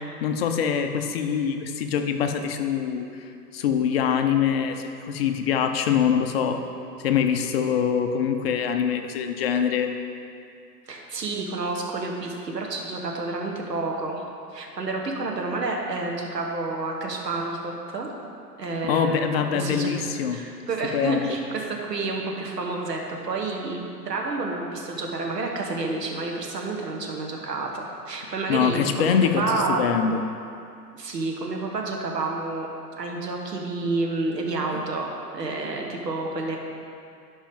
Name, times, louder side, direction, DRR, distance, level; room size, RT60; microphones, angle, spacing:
voice 1, 0.2-6.6 7.0-9.9 18.8-20.4 20.9-21.4 28.5-30.2 34.7-34.8, left 7 dB, 40° left, 6 dB, 0.7 m, -24 dB
voice 2, 10.9-14.2 14.5-18.1 18.6-19.9 20.3-29.8 30.9-32.7 33.0-36.6, right 3 dB, 80° right, 0 dB, 1.5 m, -29 dB
11.5 x 5.3 x 3.7 m, 2.5 s
figure-of-eight pair, 115°, 48 cm